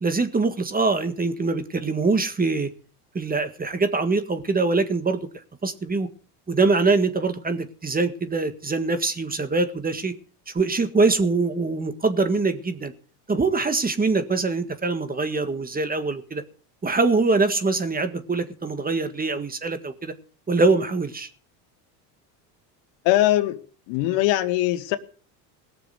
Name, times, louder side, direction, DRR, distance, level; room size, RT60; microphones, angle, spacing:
voice 1, 0.0-2.7 3.2-5.3 5.6-6.1 6.5-10.1 10.5-12.9 13.3-16.4 16.8-20.1 20.5-21.3, right 3 dB, 20° right, 1.7 m, -23 dB
voice 2, 23.0-23.6 23.9-25.0, left 15 dB, 70° left, 1.5 m, -21 dB
18.0 x 7.0 x 8.0 m
supercardioid pair, 100°, 47 cm